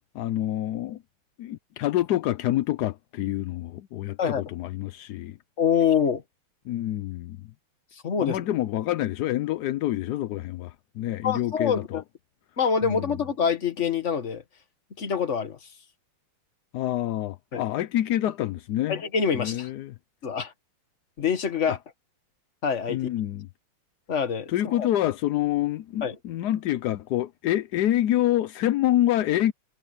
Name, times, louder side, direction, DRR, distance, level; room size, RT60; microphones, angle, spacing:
voice 1, 0.2-1.0 1.4-5.4 6.7-7.4 8.2-12.0 12.8-13.1 16.7-19.0 19.3-19.9 21.7-21.8 22.9-23.5 24.5-29.5, left 13 dB, 75° left, 0.9 m, -27 dB
voice 2, 5.6-6.2 8.0-8.5 11.2-12.0 12.6-14.4 15.0-15.6 17.5-17.7 18.9-19.7 20.2-20.5 21.2-21.8 22.6-23.0 24.1-24.9 26.0-26.2, left 7 dB, 35° left, 1.6 m, -25 dB
omnidirectional pair, 2.3 m